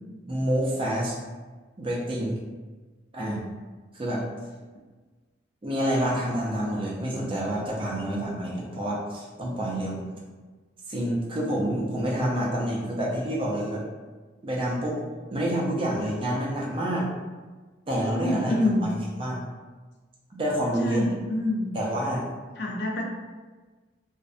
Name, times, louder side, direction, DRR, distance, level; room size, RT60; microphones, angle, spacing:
voice 1, 0.3-1.2 1.8-2.4 3.1-3.4 3.9-4.2 5.6-10.0 10.9-13.8 14.4-15.0 15.3-17.1 17.9-19.4 20.3-21.0 21.7-22.3, right 1 dB, 30° right, -4 dB, 0.4 m, -28 dB
voice 2, 18.1-18.9 20.8-21.7 22.6-23.0, left 1 dB, 60° left, -1 dB, 0.4 m, -26 dB
2.5 x 2.0 x 2.4 m, 1.3 s
head